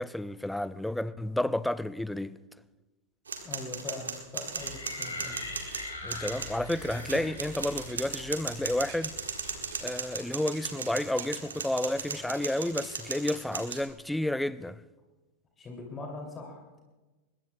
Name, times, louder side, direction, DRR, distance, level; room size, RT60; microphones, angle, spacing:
voice 1, 0.0-2.4 6.0-9.2 9.8-14.8, left 1 dB, 5° left, 0.4 m, -31 dB
sound 1, 3.3-13.8, right 5 dB, 70° right, 1.5 m, -37 dB
voice 2, 3.4-5.4 7.1-7.2 15.6-16.8, left 2 dB, 20° left, 2.8 m, -42 dB
sound 2, 4.5-9.8, left 2 dB, 75° left, 4.3 m, -42 dB
sound 3, 5.5-6.3 6.7-9.1 9.4-11.4 11.7-13.7 14.2-14.3, right 7 dB, 50° right, 3.0 m, -54 dB
23.5 x 21.0 x 2.3 m
figure-of-eight pair, 90°, 0 cm